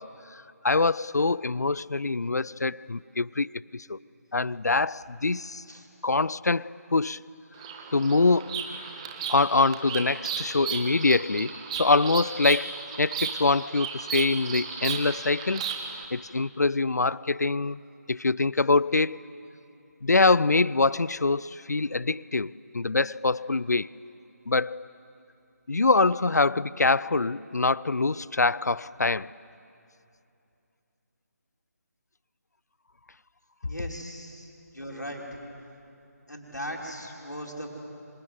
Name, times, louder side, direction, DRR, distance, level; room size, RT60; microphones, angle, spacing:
voice 1, 0.0-3.5 3.7-4.0 4.3-5.6 6.0-7.2 7.9-8.7 9.3-15.6 16.1-17.8 18.1-19.2 20.0-23.9 24.5-24.8 25.7-29.3, left 3 dB, 70° left, 0.5 m, -24 dB
Bird vocalization bird call bird song, 7.5-16.1, right 6 dB, 20° right, 1.5 m, -35 dB
voice 2, 33.6-35.2 36.3-37.7, equal, 85° left, 5.7 m, -38 dB
26.0 x 23.5 x 9.7 m
figure-of-eight pair, 155°, 9 cm